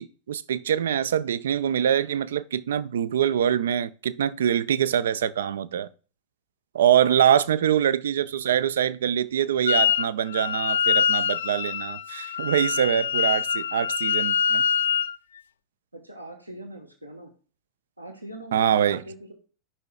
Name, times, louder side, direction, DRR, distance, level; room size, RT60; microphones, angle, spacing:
voice 1, 0.0-5.9 6.7-14.6 18.5-19.0, right 9 dB, 60° right, 0.4 m, -24 dB
voice 2, 7.2-7.7 15.9-17.3 18.0-19.3, right 1 dB, 85° right, 1.2 m, -42 dB
Wind instrument woodwind instrument, 9.7-10.1 10.3-15.1, left 7 dB, 65° left, 0.3 m, -24 dB
14.0 x 5.5 x 2.3 m
figure-of-eight pair, 90°, 0 cm